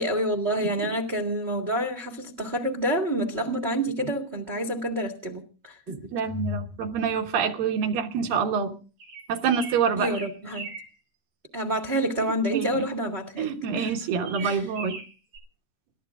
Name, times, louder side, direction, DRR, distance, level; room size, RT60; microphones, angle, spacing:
voice 1, 0.0-6.1 10.0-10.7 11.5-13.9 14.4-14.6, right 1 dB, 35° right, 1.0 m, -28 dB
voice 2, 6.1-8.7 9.3-10.2 12.5-12.9 13.4-15.0, right 6 dB, 70° right, 3.0 m, -26 dB
sound 1, 9.0-10.9 13.7-15.4, right 4 dB, 55° right, 4.4 m, -40 dB
29.0 x 13.0 x 2.4 m
omnidirectional pair, 4.2 m